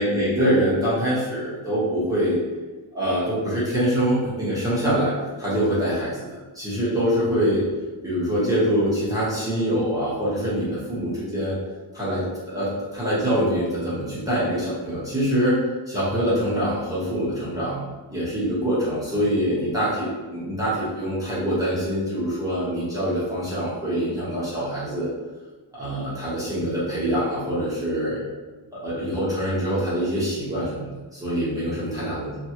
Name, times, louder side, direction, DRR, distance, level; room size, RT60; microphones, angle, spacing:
voice 1, 0.0-2.4 2.9-6.3 6.5-7.6 8.0-11.6 11.9-15.6 15.9-17.8 18.1-25.1 25.7-28.2 28.8-32.3, equal, 5° right, -11 dB, 1.0 m, -24 dB
3.0 x 2.4 x 2.8 m, 1.2 s
wide cardioid pair, 165°, 47 cm